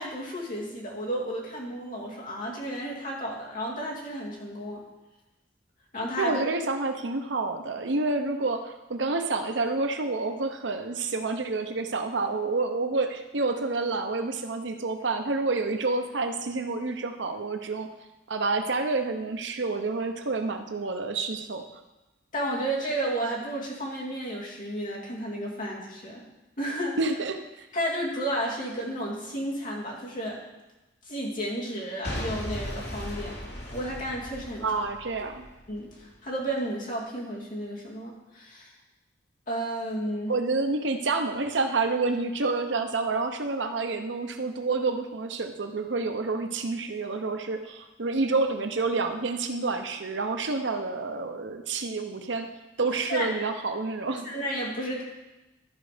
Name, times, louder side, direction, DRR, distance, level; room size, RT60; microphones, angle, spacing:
voice 1, 0.0-4.8 5.9-6.4 22.3-26.3 26.6-27.0 27.7-30.4 31.0-33.4 33.7-34.7 35.7-38.7 39.5-40.3 53.1-53.3 54.2-55.0, right 1 dB, 50° left, -4 dB, 2.3 m, -32 dB
voice 2, 6.2-17.9 18.3-21.6 27.0-27.7 34.6-35.5 40.3-52.5 52.8-54.2, right 3 dB, 80° right, 6 dB, 0.8 m, -28 dB
Boom / Shatter / Crushing, 32.0-36.0 36.6-36.7, equal, 65° left, 2.5 m, -37 dB
12.5 x 5.0 x 5.1 m, 1.0 s
head